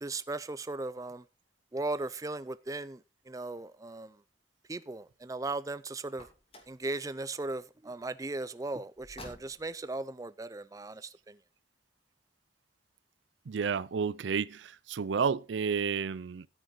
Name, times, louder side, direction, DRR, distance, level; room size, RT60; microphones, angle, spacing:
voice 1, 0.0-1.2 1.7-3.0 3.3-4.1 4.7-6.3 6.7-11.4, right 2 dB, 20° right, 0.4 m, -37 dB
Car, 6.1-6.8 9.0-9.8, left 1 dB, 30° left, 2.7 m, -50 dB
voice 2, 13.5-16.5, right 6 dB, 80° right, 0.4 m, -31 dB
13.5 x 6.5 x 4.5 m
head